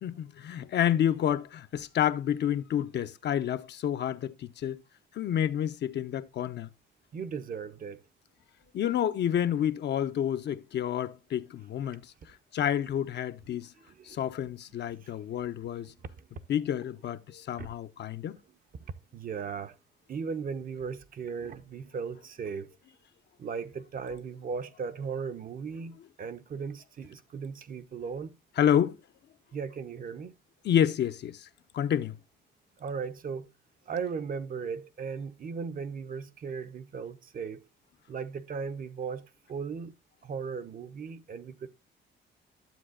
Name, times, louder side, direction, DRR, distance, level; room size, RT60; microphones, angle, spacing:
voice 1, 0.0-4.8 5.1-6.7 8.7-13.7 14.1-15.9 16.5-18.4 28.6-29.0 30.6-31.5 31.7-32.2, left 10 dB, 60° left, 0.6 m, -29 dB
voice 2, 7.1-8.0 13.9-14.2 15.0-15.2 15.6-15.7 16.2-16.3 17.6-17.7 18.8-19.8 20.1-22.7 23.4-28.4 29.5-30.3 32.8-33.5 33.9-37.6 38.1-39.9 40.2-41.7, right 6 dB, 45° right, 0.6 m, -37 dB
12.0 x 7.6 x 2.4 m
cardioid pair, 90°, 20 cm